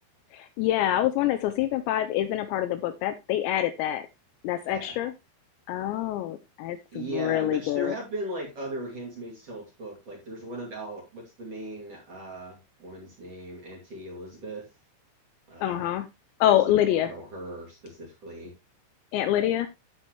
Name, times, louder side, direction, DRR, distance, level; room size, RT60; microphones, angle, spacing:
voice 1, 0.3-4.1 4.4-5.1 5.7-7.9 15.6-16.1 16.4-17.1 19.1-19.7, left 12 dB, 80° left, 10 dB, 2.7 m, -26 dB
voice 2, 6.9-14.6 15.5-15.9 16.4-16.7 17.1-18.5, right 1 dB, 40° right, -2 dB, 2.9 m, -38 dB
13.0 x 4.6 x 3.2 m, 0.23 s
omnidirectional pair, 5.5 m